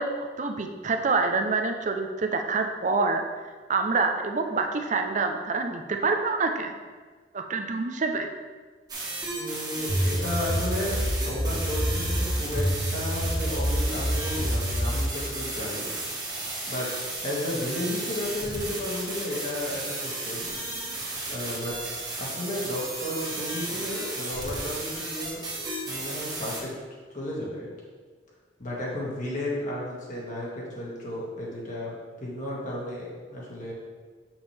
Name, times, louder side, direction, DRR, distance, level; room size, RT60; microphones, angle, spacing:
voice 1, 0.0-3.2 3.7-6.7 7.3-8.3, right 4 dB, 45° right, 5 dB, 0.6 m, -26 dB
sound 1, 8.9-26.6, right 2 dB, 25° right, 1.6 m, -34 dB
voice 2, 9.3-15.9 16.7-20.5 21.3-21.8 22.2-25.4 25.9-26.7 27.1-27.7 28.6-33.7, left 1 dB, 45° left, -4 dB, 1.9 m, -33 dB
sound 2, 9.9-15.1, equal, 70° right, 1.4 m, -27 dB
7.2 x 6.2 x 3.4 m, 1.5 s
head